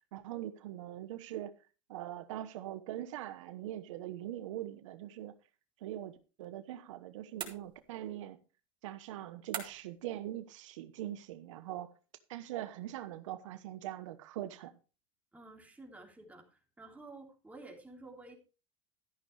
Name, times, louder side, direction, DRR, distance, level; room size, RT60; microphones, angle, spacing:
voice 1, 0.1-1.5 1.9-5.3 5.8-8.4 8.8-11.9 12.3-14.7, right 13 dB, 85° right, 1.1 m, -42 dB
sound 1, 7.4-8.1 9.5-10.0, right 7 dB, 30° right, 3.5 m, -42 dB
voice 2, 15.3-18.4, right 2 dB, 10° right, 3.6 m, -52 dB
13.0 x 11.0 x 3.3 m
supercardioid pair, 110°, 16 cm